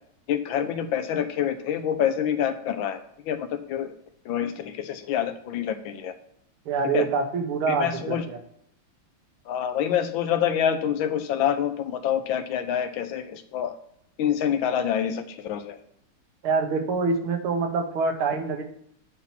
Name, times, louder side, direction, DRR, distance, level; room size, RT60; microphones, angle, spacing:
voice 1, 0.3-3.0 3.3-3.9 4.3-6.1 6.9-7.0 7.7-8.2 9.5-13.7 14.2-15.8, left 9 dB, 70° left, 10 dB, 1.3 m, -26 dB
voice 2, 6.7-8.4 16.4-18.6, right 4 dB, 80° right, 4 dB, 1.9 m, -25 dB
8.6 x 4.2 x 5.8 m, 0.72 s
omnidirectional pair, 2.3 m